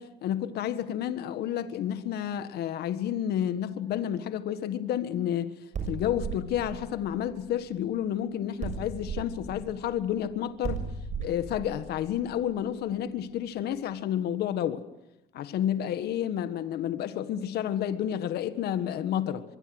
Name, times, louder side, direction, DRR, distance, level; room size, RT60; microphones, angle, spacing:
voice 1, 0.0-5.5 5.9-10.8 11.2-14.8 15.3-19.4, left 10 dB, 70° left, 1.6 m, -30 dB
sound 1, 5.7-8.1 8.6-13.3, right 5 dB, 45° right, 7.1 m, -37 dB
24.0 x 23.5 x 8.0 m
cardioid pair, 110°, 17 cm